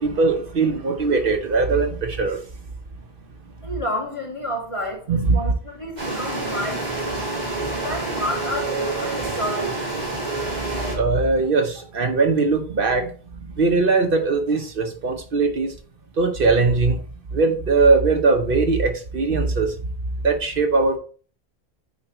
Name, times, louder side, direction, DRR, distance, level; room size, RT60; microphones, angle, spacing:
voice 1, 0.0-2.4 5.1-5.3 10.9-13.1 13.6-15.7 16.2-17.0 17.3-19.7 20.2-21.0, right 3 dB, 60° right, 1.0 m, -20 dB
voice 2, 3.6-7.3 7.8-9.9, equal, 30° left, 1.9 m, -30 dB
sound 1, 6.0-10.9, right 2 dB, 45° right, 2.8 m, -27 dB
8.4 x 4.4 x 3.0 m
omnidirectional pair, 1.0 m